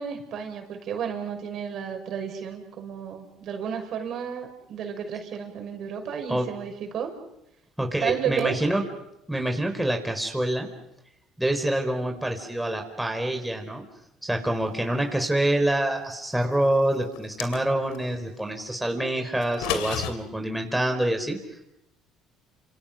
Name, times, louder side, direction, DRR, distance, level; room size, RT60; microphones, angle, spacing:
voice 1, 0.0-7.1 8.0-8.6, right 8 dB, 60° right, 4 dB, 6.2 m, -32 dB
voice 2, 7.8-8.8 9.3-10.7 11.4-13.8 14.2-21.4, right 1 dB, 5° right, 3 dB, 4.6 m, -26 dB
sound 1, 17.1-18.0 19.4-20.1, left 9 dB, 85° left, 2.7 m, -31 dB
29.0 x 27.5 x 6.1 m, 0.85 s
supercardioid pair, 85°, 0 cm